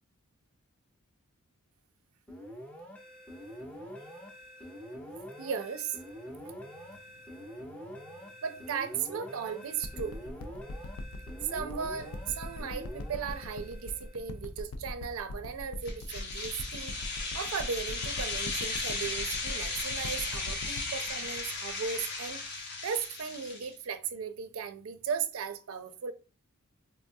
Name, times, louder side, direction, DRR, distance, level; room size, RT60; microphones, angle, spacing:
sound 1, 2.3-14.4, equal, 5° left, 0.5 m, -46 dB
voice 1, 5.4-6.0 8.4-10.2 11.4-17.0 17.3-26.1, right 7 dB, 65° right, 0.4 m, -36 dB
sound 2, 9.8-22.6 23.2-23.3, left 2 dB, 70° left, 0.4 m, -41 dB
sound 3, 15.9-23.7, left 3 dB, 50° left, 0.8 m, -36 dB
3.4 x 2.2 x 2.6 m
head